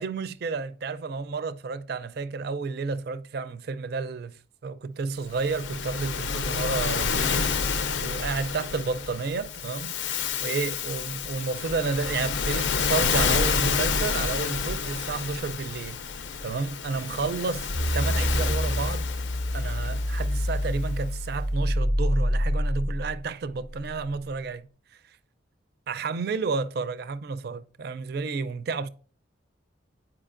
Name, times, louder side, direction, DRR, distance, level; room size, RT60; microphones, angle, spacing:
voice 1, 0.0-4.4 4.6-7.7 8.0-16.0 16.4-19.1 19.5-24.7 25.9-28.9, right 4 dB, 55° right, 0.4 m, -31 dB
Waves surf, 5.3-20.8, left 5 dB, 75° left, 0.5 m, -29 dB
sound 1, 17.7-24.0, equal, 15° left, 0.3 m, -27 dB
8.8 x 4.9 x 2.5 m
head